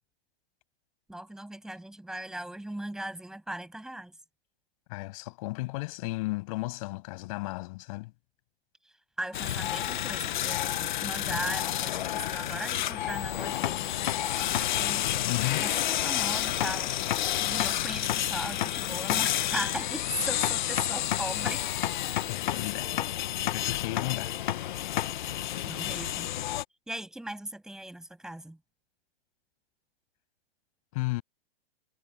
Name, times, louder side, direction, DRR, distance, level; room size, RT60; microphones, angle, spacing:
voice 1, 1.1-4.1 9.2-15.0 15.6-16.9 17.4-21.6 25.7-26.3 26.9-28.6, right 1 dB, ahead, 6.4 m, -38 dB
voice 2, 4.9-8.1 15.2-15.7 22.2-23.0 23.5-24.3 30.9-31.2, left 22 dB, 35° left, 7.2 m, -34 dB
sound 1, 9.3-26.6, left 13 dB, 50° left, 0.9 m, -30 dB
hypercardioid pair, 175°, 31 cm